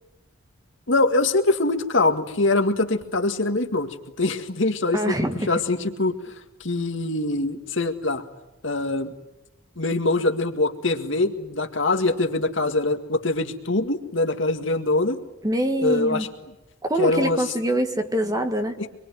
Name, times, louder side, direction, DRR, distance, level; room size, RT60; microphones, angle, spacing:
voice 1, 0.9-5.1 5.5-6.2 6.6-8.2 8.6-9.1 9.8-15.2 15.8-16.3 17.0-17.4 18.8-18.9, left 2 dB, 65° left, 6 dB, 2.0 m, -23 dB
voice 2, 4.9-5.5 15.4-16.3 16.8-18.8, equal, 20° right, 6 dB, 1.7 m, -24 dB
25.5 x 22.5 x 9.4 m, 0.97 s
head